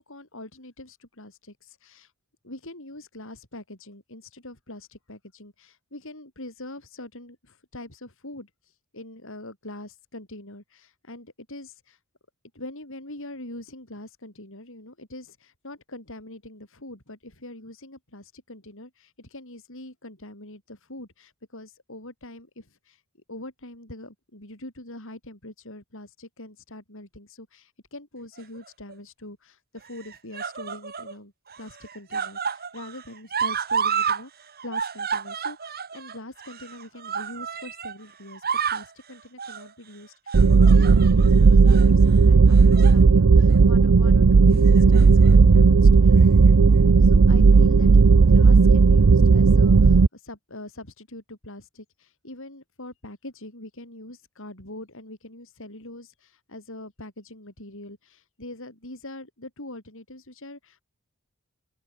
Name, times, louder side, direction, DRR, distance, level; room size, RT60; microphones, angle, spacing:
voice 1, 0.0-2.1 2.4-12.0 12.5-23.0 23.3-46.3 47.0-60.8, left 1 dB, 60° left, 7.0 m, -43 dB
sound 1, 28.4-28.9 29.8-31.1 31.5-34.2 34.5-38.0 38.3-38.9 39.4-39.7 40.3-41.3 41.7-41.9 42.5-43.0 43.4-43.6 44.7-45.3 46.2-46.3, right 6 dB, 45° right, 4.1 m, -31 dB
sound 2, 40.3-50.1, right 4 dB, 85° right, 0.6 m, -14 dB
open air
head